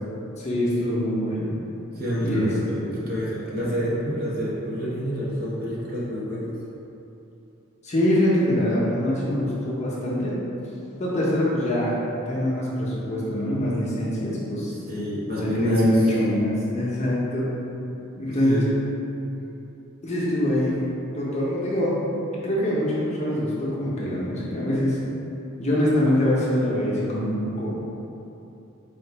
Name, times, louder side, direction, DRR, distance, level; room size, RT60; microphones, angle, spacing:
voice 1, 0.4-1.5 2.2-2.5 2.9-3.0 7.8-10.3 11.0-14.7 15.4-17.5 18.2-18.6 20.0-20.7 21.1-21.9 22.3-25.0 25.6-27.9, left 1 dB, 30° left, -6 dB, 0.7 m, -24 dB
voice 2, 2.0-6.5 14.9-16.0 18.4-18.7, equal, 45° right, -7 dB, 0.8 m, -28 dB
3.9 x 2.4 x 4.5 m, 2.9 s
head